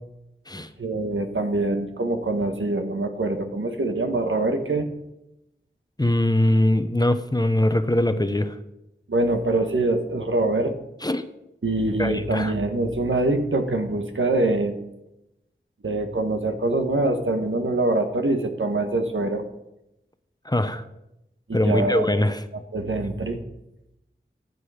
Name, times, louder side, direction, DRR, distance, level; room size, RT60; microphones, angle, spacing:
voice 1, 0.8-4.8 9.1-10.7 11.6-14.8 15.8-19.4 21.5-22.2 22.5-23.4, right 2 dB, 75° right, 5 dB, 1.5 m, -24 dB
voice 2, 6.0-8.5 11.0-11.3 12.0-12.5 20.5-20.8 21.5-22.4, left 1 dB, 20° left, 10 dB, 0.9 m, -22 dB
14.5 x 8.3 x 5.1 m, 0.88 s
wide cardioid pair, 50°, 20 cm